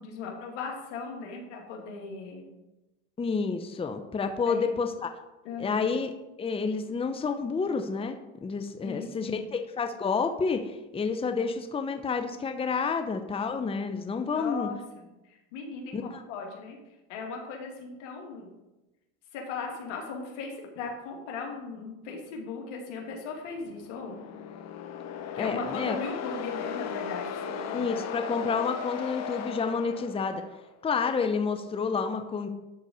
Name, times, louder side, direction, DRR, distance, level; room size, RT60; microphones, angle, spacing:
voice 1, 0.0-2.5 4.4-4.7 5.4-5.8 8.8-9.4 14.2-16.8 17.1-18.5 19.3-24.2 25.3-28.1 29.7-29.8, left 4 dB, 85° left, 1 dB, 2.4 m, -38 dB
voice 2, 3.2-5.1 5.6-6.1 6.4-8.1 8.4-10.6 10.9-14.7 15.9-16.2 25.4-26.0 27.7-30.4 30.8-32.5, left 5 dB, 15° left, 7 dB, 0.7 m, -29 dB
sound 1, 23.6-30.7, left 7 dB, 50° left, 1.1 m, -37 dB
12.0 x 4.1 x 6.3 m, 1.0 s
supercardioid pair, 105°, 35 cm